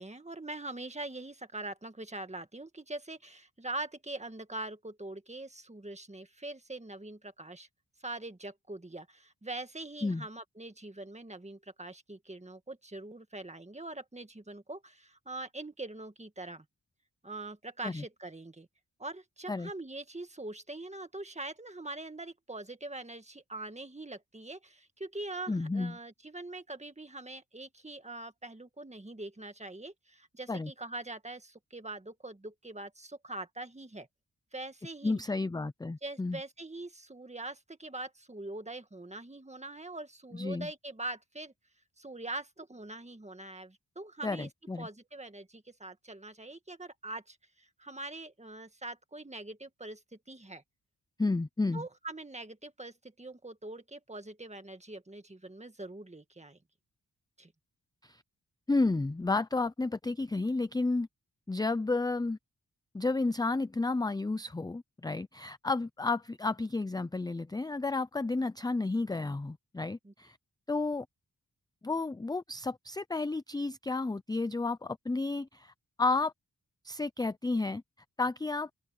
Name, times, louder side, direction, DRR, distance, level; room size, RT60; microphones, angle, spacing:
voice 1, 0.0-7.7 8.0-16.7 17.2-18.7 19.0-34.1 34.5-35.2 36.0-41.5 42.0-44.5 44.8-50.6 51.7-56.6 57.4-57.5 70.0-70.1, right 2 dB, 20° right, 1.7 m, -43 dB
voice 2, 25.5-26.0 30.5-30.7 35.0-36.4 40.3-40.7 44.2-44.9 51.2-51.8 58.0-58.2 58.7-61.1 61.5-62.4 62.9-70.4 70.7-71.1 71.8-75.7 76.0-76.3 76.8-77.8 78.2-78.7, left 3 dB, 10° left, 0.4 m, -31 dB
wide cardioid pair, 110°, 36 cm